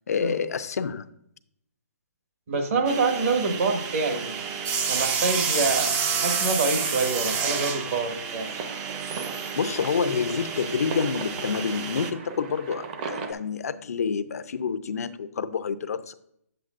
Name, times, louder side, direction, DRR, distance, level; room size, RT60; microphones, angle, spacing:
voice 1, 0.1-1.1 9.6-16.1, left 6 dB, 75° left, 0.5 m, -28 dB
voice 2, 2.5-4.5 4.9-8.5, right 3 dB, 55° right, 1.4 m, -26 dB
sound 1, 2.9-12.1, right 6 dB, 15° right, 0.4 m, -29 dB
sound 2, 8.2-13.3, right 4 dB, 35° right, 0.8 m, -38 dB
8.5 x 7.7 x 2.5 m
hypercardioid pair, 160°, 9 cm